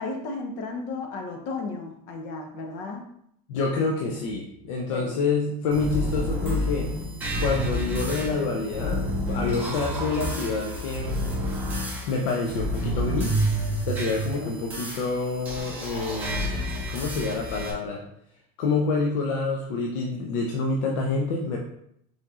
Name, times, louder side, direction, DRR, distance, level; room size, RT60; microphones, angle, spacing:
voice 1, 0.0-3.1 4.9-5.1 14.3-14.5, left 3 dB, 50° left, 3 dB, 0.9 m, -34 dB
voice 2, 3.5-6.9 7.4-11.2 12.0-13.3 13.8-16.5 16.9-18.0 18.6-21.6, left 4 dB, 80° left, 0 dB, 0.7 m, -27 dB
sound 1, 5.7-17.7, equal, 10° right, 1.7 m, -29 dB
4.8 x 4.1 x 2.4 m, 0.73 s
supercardioid pair, 145°, 17 cm